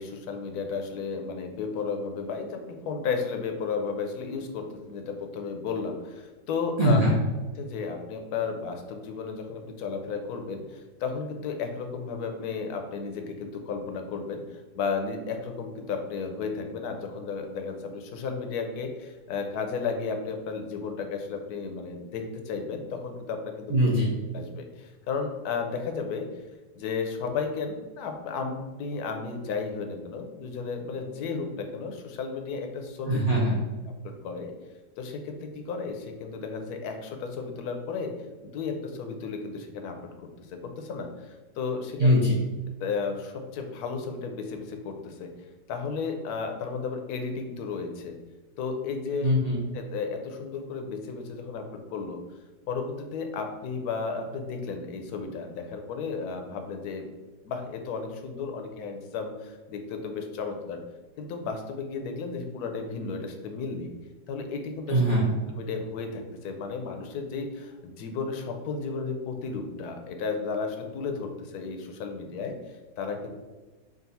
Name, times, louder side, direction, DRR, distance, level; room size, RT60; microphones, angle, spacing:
voice 1, 0.0-7.0 7.6-23.7 24.3-26.3 26.8-33.2 34.0-34.5 35.0-38.1 38.4-42.2 42.8-45.3 45.7-48.2 48.6-49.3 49.7-51.6 51.9-52.2 52.7-57.1 57.4-60.8 61.2-63.9 64.3-65.0 65.5-73.3, left 5 dB, 70° left, 4 dB, 1.0 m, -33 dB
voice 2, 6.8-7.1 23.7-24.1 33.1-33.5 42.0-42.3 49.2-49.6 64.9-65.3, equal, 75° right, -6 dB, 0.3 m, -21 dB
3.8 x 2.4 x 4.0 m, 1.2 s
omnidirectional pair, 1.9 m